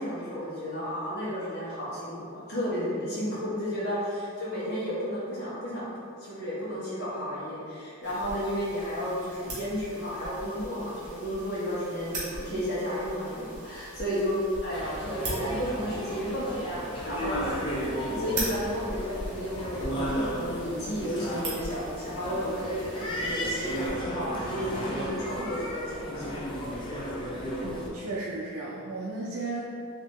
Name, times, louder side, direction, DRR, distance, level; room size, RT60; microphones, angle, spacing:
voice 1, 0.0-5.8 6.2-17.6 18.1-26.4, equal, 45° left, -9 dB, 1.2 m, -32 dB
sound 1, 8.0-23.9, right 1 dB, 35° right, 1.0 m, -41 dB
sound 2, 14.7-27.9, equal, 20° left, 0.4 m, -34 dB
voice 2, 27.6-29.6, right 3 dB, 85° right, -5 dB, 0.5 m, -35 dB
4.0 x 2.8 x 3.0 m, 2.3 s
head